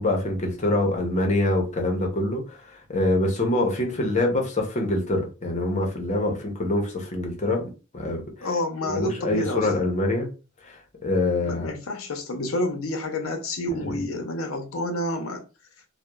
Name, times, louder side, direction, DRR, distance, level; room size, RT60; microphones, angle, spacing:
voice 1, 0.0-8.5 8.8-10.3 10.6-11.7 13.8-14.0, left 2 dB, 35° left, 0.7 m, -25 dB
voice 2, 8.4-9.8 11.4-15.4, left 1 dB, 75° left, 0.6 m, -29 dB
2.9 x 2.1 x 2.2 m
head